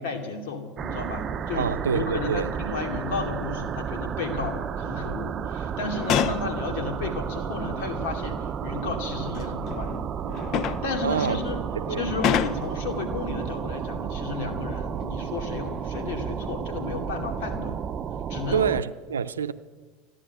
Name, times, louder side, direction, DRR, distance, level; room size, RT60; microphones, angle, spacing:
voice 1, 0.0-9.9 10.8-11.6 11.9-17.8 18.3-18.6, left 4 dB, 70° left, 2.7 m, -33 dB
sound 1, 0.8-18.8, right 7 dB, 35° right, 0.7 m, -32 dB
voice 2, 1.5-2.5 11.0-11.4 11.7-12.1 18.5-19.5, right 7 dB, 85° right, 0.5 m, -26 dB
sound 2, 5.8-6.5 7.7-7.8 9.0-12.8 14.7-15.1 15.5-16.3 16.8-17.0, left 9 dB, 50° left, 0.7 m, -30 dB
14.5 x 11.0 x 9.2 m
hypercardioid pair, 85°, 0 cm